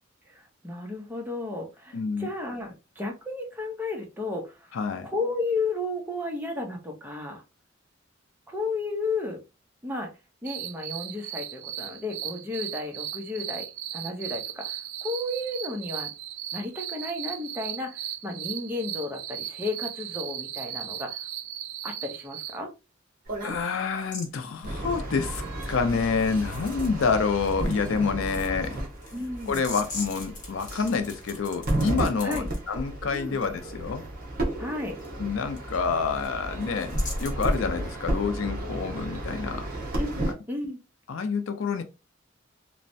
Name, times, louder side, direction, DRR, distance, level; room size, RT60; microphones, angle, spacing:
voice 1, 0.3-4.8 5.0-7.4 8.5-9.4 9.8-10.1 10.4-13.7 13.9-16.1 16.5-21.2 21.8-22.7 29.1-29.6 32.2-32.5 33.1-33.4 34.6-35.0 40.0-40.2 40.5-40.8, left 2 dB, 10° right, 0.7 m, -33 dB
voice 2, 1.9-2.3 4.7-5.1 23.4-25.4 25.7-28.8 29.5-34.0 35.2-39.7 41.1-41.8, left 5 dB, 80° left, 0.5 m, -28 dB
sound 1, 10.5-22.6, right 11 dB, 80° right, 0.3 m, -37 dB
sound 2, 23.3-23.6 24.6-40.3, right 1 dB, 50° right, 1.0 m, -32 dB
sound 3, 24.0-24.3 25.2-27.1 27.4-32.6 35.0-35.1 35.6-35.7 35.9-36.3 36.6-37.6, left 3 dB, 40° left, 0.9 m, -42 dB
3.1 x 2.1 x 2.6 m
head